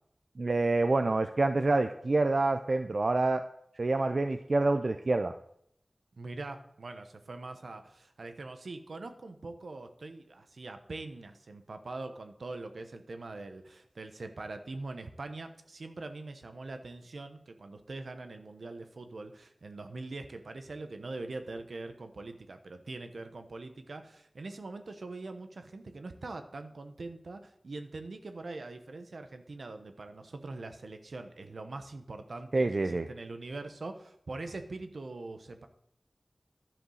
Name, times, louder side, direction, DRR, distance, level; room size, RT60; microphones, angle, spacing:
voice 1, 0.4-3.4 3.8-5.3 32.5-33.1, right 2 dB, 65° right, 8 dB, 0.4 m, -27 dB
voice 2, 6.2-35.7, right 2 dB, 85° right, 7 dB, 0.9 m, -43 dB
11.0 x 5.1 x 6.4 m, 0.73 s
wide cardioid pair, 50°, 0 cm